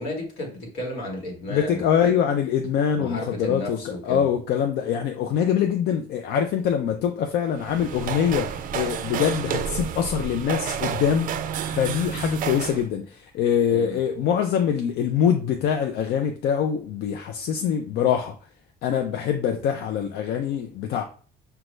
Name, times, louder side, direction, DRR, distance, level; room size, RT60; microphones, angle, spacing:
voice 1, 0.0-1.9 2.9-4.2 13.7-14.0, left 1 dB, 90° left, 1.2 m, -33 dB
voice 2, 1.5-11.3 11.7-18.3 18.8-21.0, left 8 dB, 75° left, 0.4 m, -24 dB
sound 1, 7.5-12.9, right 8 dB, 55° right, 0.4 m, -30 dB
5.0 x 2.3 x 3.1 m
cardioid pair, 110°, 17 cm